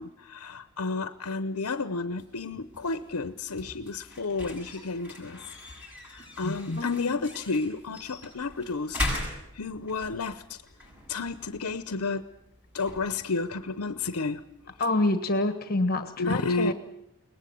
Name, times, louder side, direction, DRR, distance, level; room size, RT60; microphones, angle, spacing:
voice 1, 0.0-5.4 6.0-10.6 11.1-12.2 12.7-14.4 14.7-14.8 16.2-16.7, left 3 dB, 75° left, 12 dB, 0.8 m, -31 dB
sound 1, 2.1-14.8, left 1 dB, 5° right, 7.9 m, -40 dB
voice 2, 6.8-7.2 14.8-16.7, left 2 dB, 45° left, 10 dB, 1.4 m, -27 dB
22.5 x 19.0 x 9.3 m, 0.81 s
head